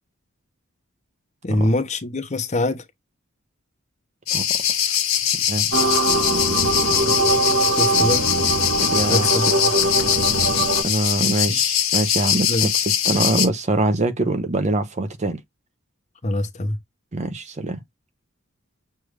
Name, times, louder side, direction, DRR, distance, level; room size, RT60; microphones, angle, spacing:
voice 1, 1.4-2.8 7.8-8.2 9.1-9.7 11.5-11.6 12.5-12.7 16.2-16.8, left 1 dB, 35° left, 0.8 m, -24 dB
sound 1, 4.3-13.5, left 10 dB, 75° left, 1.3 m, -22 dB
sound 2, 5.7-10.8, right 2 dB, 70° right, 1.7 m, -21 dB
voice 2, 8.8-9.4 10.8-15.4 17.1-17.8, right 2 dB, 35° right, 0.6 m, -24 dB
6.4 x 2.5 x 3.2 m
head